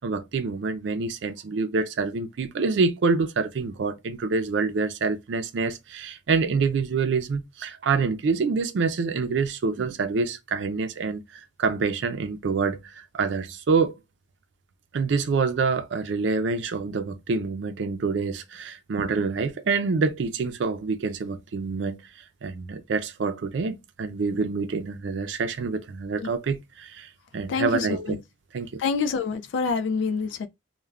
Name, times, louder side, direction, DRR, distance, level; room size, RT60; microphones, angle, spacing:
voice 1, 0.0-11.2 11.6-13.9 14.9-22.0 22.4-28.2 28.5-28.8, right 4 dB, 70° right, 0.4 m, -26 dB
voice 2, 27.5-28.2 28.8-30.5, left 5 dB, 80° left, 0.3 m, -27 dB
2.3 x 2.1 x 3.1 m
head